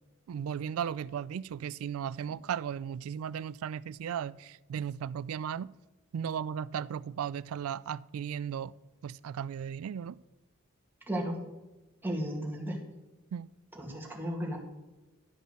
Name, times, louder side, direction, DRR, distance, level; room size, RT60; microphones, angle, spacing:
voice 1, 0.3-5.7 6.1-8.7 9.0-10.1 13.3-13.5, right 8 dB, 90° right, 0.3 m, -36 dB
voice 2, 11.1-11.4 12.0-12.8 13.7-14.6, right 1 dB, 10° right, 2.1 m, -34 dB
12.0 x 5.4 x 6.3 m
head